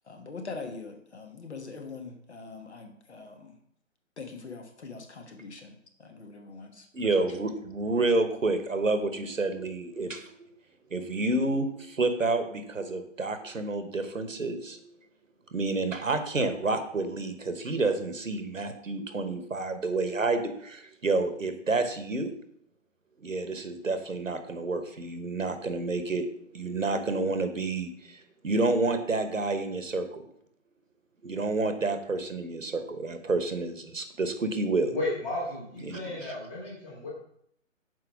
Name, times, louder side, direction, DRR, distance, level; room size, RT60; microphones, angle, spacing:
voice 1, 0.1-3.6 4.2-6.9, left 4 dB, 55° left, 4 dB, 1.2 m, -43 dB
voice 2, 6.9-10.4 10.9-14.8 15.5-22.3 23.2-26.3 26.5-30.2 31.2-35.0 35.8-36.3, right 3 dB, 75° right, 8 dB, 1.0 m, -29 dB
voice 3, 34.9-37.1, left 2 dB, 15° left, -4 dB, 1.4 m, -34 dB
6.2 x 4.6 x 4.7 m, 0.69 s
figure-of-eight pair, 140°, 39 cm